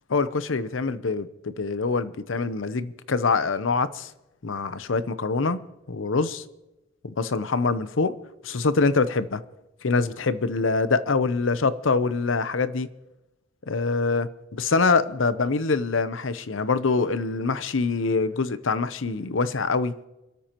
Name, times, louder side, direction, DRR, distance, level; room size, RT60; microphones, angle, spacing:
voice 1, 0.1-4.1 4.4-5.6 5.9-6.4 7.0-8.1 8.4-9.4 9.8-12.9 13.7-19.9, left 4 dB, 90° left, 0.8 m, -24 dB
28.5 x 13.0 x 3.0 m
head